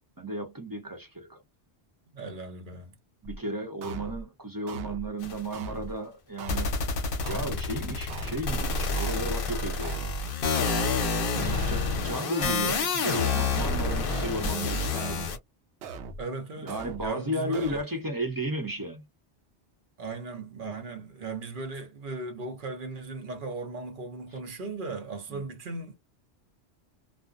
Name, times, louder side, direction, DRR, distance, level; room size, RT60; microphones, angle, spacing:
voice 1, 0.2-1.4 3.2-6.8 7.3-10.0 11.1-15.3 16.6-19.0 24.3-24.4 25.3-25.5, right 1 dB, 20° right, 0.8 m, -34 dB
voice 2, 2.1-2.9 11.3-11.7 16.2-17.8 20.0-26.0, right 3 dB, 55° right, 0.9 m, -37 dB
sound 1, 3.2-3.4 3.8-4.2 4.7-5.1 5.5-5.9 6.4-6.8 7.2-7.7 8.1-8.5 9.0-9.4 9.8-10.2 10.7-11.1 11.5-11.9 12.4-12.8 13.2-13.7 14.1-14.5 15.0-15.4 15.8-16.2 16.7-17.1 17.5-17.8, right 2 dB, 85° right, 0.9 m, -39 dB
sound 2, 5.2-5.5 6.5-15.4, left 4 dB, 60° left, 0.8 m, -28 dB
2.4 x 2.1 x 2.4 m
omnidirectional pair, 1.1 m